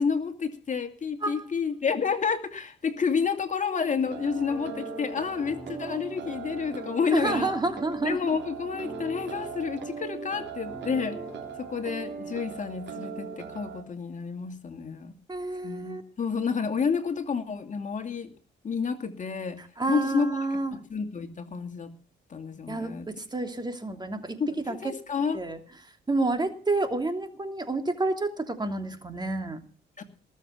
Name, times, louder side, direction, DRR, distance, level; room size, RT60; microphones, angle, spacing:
voice 1, 0.0-7.5 8.0-11.2 11.6-15.1 15.6-18.3 18.6-19.6 19.9-20.3 20.7-21.9 22.3-23.1 24.4-25.4 30.0-30.1, left 5 dB, 40° left, 7 dB, 2.5 m, -30 dB
sound 1, 3.8-13.8, right 6 dB, 65° right, 3.8 m, -39 dB
sound 2, 4.3-14.5, equal, 5° right, 4.7 m, -46 dB
voice 2, 7.1-8.2 15.3-16.0 19.8-20.8 22.7-24.4 24.7-24.8 25.3-25.6 26.1-29.6, right 2 dB, 20° right, 6 dB, 2.9 m, -29 dB
19.5 x 7.4 x 7.5 m, 0.44 s
cardioid pair, 90°, 20 cm